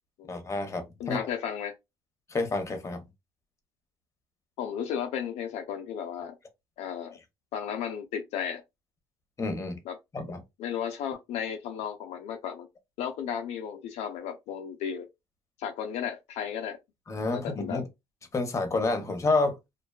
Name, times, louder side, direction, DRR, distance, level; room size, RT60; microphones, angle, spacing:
voice 1, 0.3-1.3 2.3-3.0 9.4-9.8 10.1-10.4 17.1-17.9 18.3-19.6, left 3 dB, 25° left, 0.8 m, -29 dB
voice 2, 1.0-1.7 4.6-6.4 6.8-7.2 7.5-8.6 9.9-10.0 10.6-12.7 13.0-15.1 15.6-16.8 17.3-17.8, left 8 dB, 70° left, 0.4 m, -34 dB
2.5 x 2.2 x 2.3 m
supercardioid pair, 85°, 12 cm